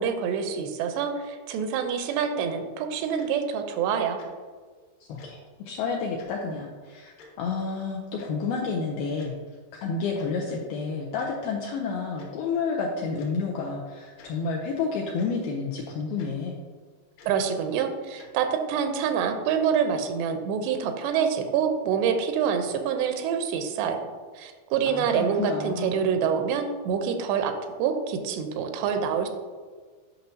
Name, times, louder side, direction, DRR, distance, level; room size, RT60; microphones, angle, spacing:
voice 1, 0.0-4.2 17.3-24.0 24.4-29.3, right 7 dB, 90° right, 6 dB, 2.8 m, -26 dB
Tick-tock, 3.2-3.3 4.2-4.3 5.2-5.3 6.2-6.3 7.2-7.3 8.2-8.3 9.2-9.4 10.2-10.3 11.2-11.3 12.2-12.3 13.2-13.3 14.1-14.3 15.2-15.3 16.2-16.3 17.2-17.4 18.2-18.3, left 4 dB, 65° left, 2.5 m, -50 dB
voice 2, 5.1-5.4 5.7-7.1 7.4-9.3 9.7-16.6 24.9-26.0, left 4 dB, 85° left, -1 dB, 2.1 m, -30 dB
9.2 x 5.6 x 2.6 m, 1.5 s
omnidirectional pair, 4.9 m